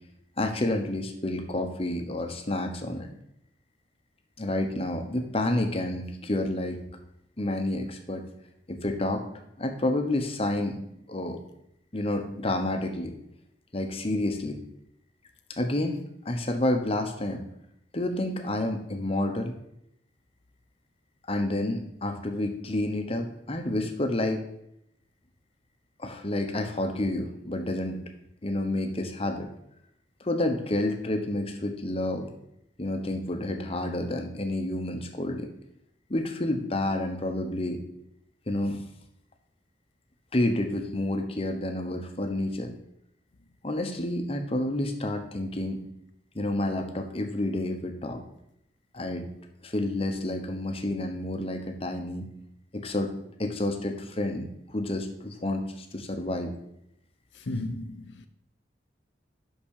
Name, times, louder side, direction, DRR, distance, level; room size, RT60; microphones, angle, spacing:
voice 1, 0.4-3.1 4.4-6.8 7.4-8.3 8.7-9.3 9.6-10.8 11.1-11.4 11.9-13.1 13.7-14.6 15.5-17.4 17.9-19.5 21.3-24.4 26.0-28.0 28.4-29.5 30.2-32.3 32.8-35.5 36.1-37.8 38.5-38.8 40.3-42.7 43.6-45.8 46.3-48.2 48.9-49.3 49.6-52.3 52.7-53.1 53.4-56.5, left 1 dB, 35° left, 1.0 m, -29 dB
voice 2, 57.5-58.3, left 2 dB, 90° left, 0.8 m, -34 dB
5.9 x 5.9 x 6.6 m
head